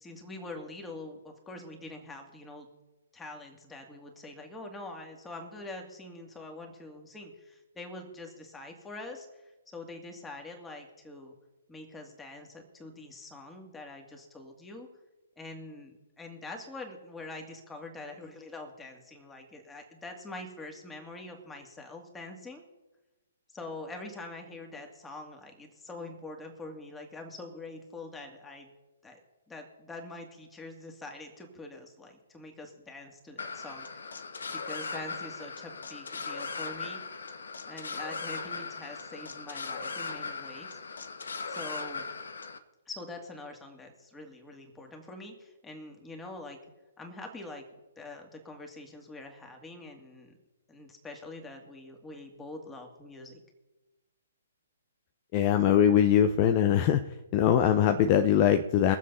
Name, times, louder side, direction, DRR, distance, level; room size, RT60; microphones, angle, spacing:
voice 1, 0.0-2.7 3.1-11.4 11.7-14.9 15.4-22.6 23.5-28.7 29.0-29.2 29.5-37.0 37.7-40.8 41.5-42.0 42.9-46.6 47.0-47.6 48.0-50.3 50.7-53.4, left 2 dB, 10° left, 2 dB, 2.3 m, -44 dB
sound 1, 33.4-42.6, left 4 dB, 70° left, 1.2 m, -38 dB
voice 2, 55.3-57.0 57.3-59.0, left 9 dB, 35° left, 8 dB, 0.7 m, -22 dB
21.5 x 7.6 x 5.5 m, 1.1 s
figure-of-eight pair, 130°, 0 cm